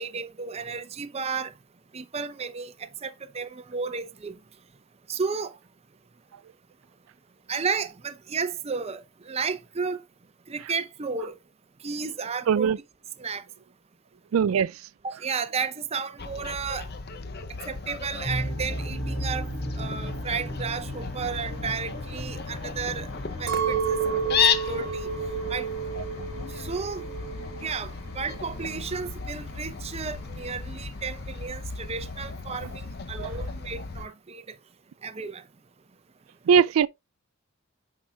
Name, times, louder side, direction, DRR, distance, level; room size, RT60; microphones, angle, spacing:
voice 1, 0.0-1.5 1.9-4.4 5.1-5.6 7.5-10.0 10.5-11.4 11.8-12.7 13.2-13.4 15.0-16.9 17.7-19.5 19.8-23.1 23.4-24.0 24.2-25.1 25.5-25.7 26.5-27.0 27.6-34.5 35.0-35.4, right 5 dB, 30° right, 0.6 m, -33 dB
voice 2, 14.3-14.7 33.2-33.3 36.5-36.9, right 7 dB, 70° right, 0.3 m, -20 dB
Fowl, 16.2-34.1, left 6 dB, 50° left, 0.6 m, -34 dB
sound 1, 18.2-34.0, right 1 dB, 70° left, 3.0 m, -39 dB
Chink clink, 23.5-27.8 28.1-28.9, right 7 dB, 50° right, 1.2 m, -31 dB
9.1 x 5.7 x 2.3 m
head